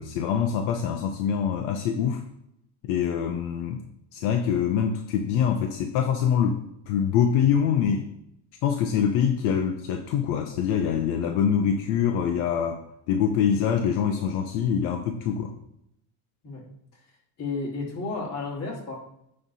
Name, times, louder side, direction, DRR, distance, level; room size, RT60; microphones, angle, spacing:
voice 1, 0.0-2.2 2.8-3.8 4.1-8.1 8.6-12.8 13.1-15.5, left 8 dB, 75° left, 5 dB, 0.8 m, -24 dB
voice 2, 17.4-18.9, left 3 dB, 35° left, -2 dB, 2.3 m, -32 dB
9.3 x 3.3 x 4.1 m, 0.77 s
cardioid pair, 140°, 43 cm